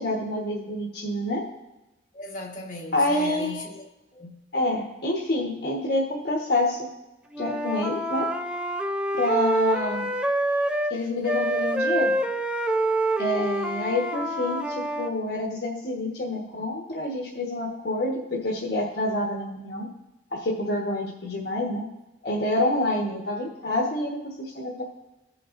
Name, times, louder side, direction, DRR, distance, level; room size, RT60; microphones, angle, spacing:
voice 1, 0.0-1.4 2.9-3.7 4.5-6.8 7.4-8.3 9.1-10.1 10.9-12.1 13.2-19.9 20.3-21.8 22.2-24.8, left 1 dB, 65° left, 1.2 m, -27 dB
voice 2, 2.1-4.3 11.2-11.3, left 2 dB, 45° left, 1.5 m, -38 dB
Wind instrument woodwind instrument, 7.3-11.0 11.2-15.1, right 1 dB, 5° right, 0.4 m, -26 dB
16.5 x 5.7 x 2.5 m
head